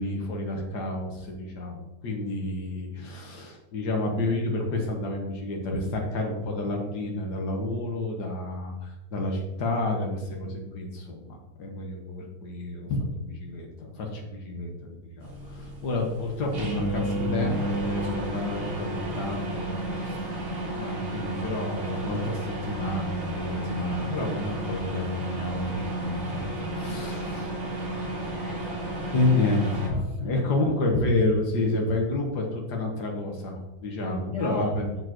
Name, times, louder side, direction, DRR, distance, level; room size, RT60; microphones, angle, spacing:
voice 1, 0.0-20.3 20.7-27.5 29.1-34.8, left 2 dB, 50° left, 0 dB, 1.2 m, -30 dB
sound 1, 15.2-29.9, right 1 dB, 65° right, 3.3 m, -32 dB
voice 2, 28.4-29.4 29.9-30.7 34.0-35.0, left 1 dB, 5° right, -5 dB, 1.4 m, -42 dB
8.6 x 7.4 x 3.1 m, 1.0 s
omnidirectional pair, 3.6 m